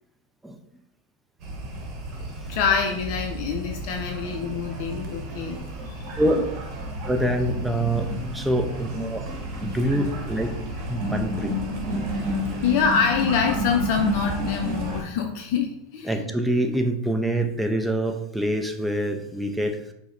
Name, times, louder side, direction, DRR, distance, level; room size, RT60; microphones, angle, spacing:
sound 1, 1.4-15.0, equal, 45° right, 0.9 m, -31 dB
voice 1, 2.5-5.6 5.9-6.1 11.0-11.1 12.1-12.3 12.6-16.3, left 6 dB, 60° left, 3 dB, 0.3 m, -26 dB
voice 2, 7.0-9.2 9.6-10.5 10.9-11.5 16.0-19.8, right 1 dB, 5° right, 4 dB, 0.4 m, -25 dB
4.8 x 2.0 x 2.5 m, 0.80 s
hypercardioid pair, 110°, 0 cm